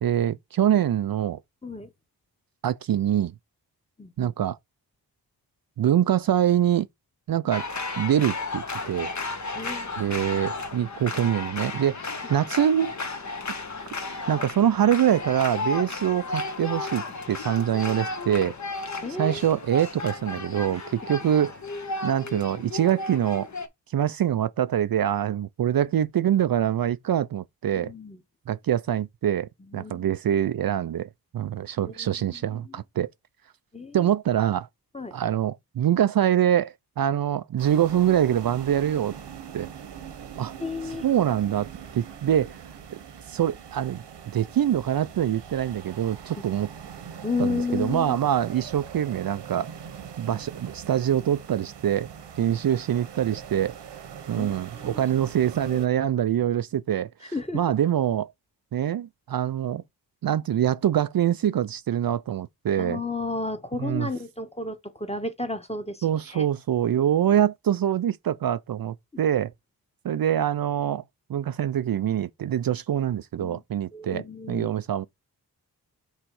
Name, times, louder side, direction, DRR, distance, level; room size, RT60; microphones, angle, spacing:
voice 1, 0.0-1.4 2.6-3.3 4.2-4.6 5.8-6.9 7.3-7.6 8.0-9.1 10.0-12.9 14.3-18.5 19.2-21.5 22.0-23.5 23.9-27.9 28.5-33.1 33.9-34.7 35.1-39.1 39.5-39.7 40.4-40.5 41.0-41.7 41.9-42.6 43.3-44.0 44.3-46.7 47.4-49.7 50.2-52.1 52.4-53.8 54.3-58.3 58.7-59.8 60.2-63.0 63.8-64.1 66.0-69.5 70.0-71.0 71.3-75.1, right 10 dB, 60° right, 0.6 m, -24 dB
voice 2, 4.0-4.3 9.5-9.9 12.2-12.3 19.0-19.4 20.7-20.9 27.7-28.2 29.6-30.1 31.8-32.8 33.7-34.1 34.9-35.1 40.6-41.1 47.2-48.2 54.3-55.0 55.6-55.9 57.3-57.6 62.8-66.5 73.4-73.6 73.9-74.7, left 3 dB, 15° left, 1.5 m, -33 dB
sound 1, 7.5-23.7, left 3 dB, 45° left, 1.4 m, -34 dB
sound 2, 37.6-55.9, right 8 dB, 90° right, 1.3 m, -42 dB
6.1 x 3.3 x 4.8 m
cardioid pair, 55°, 40 cm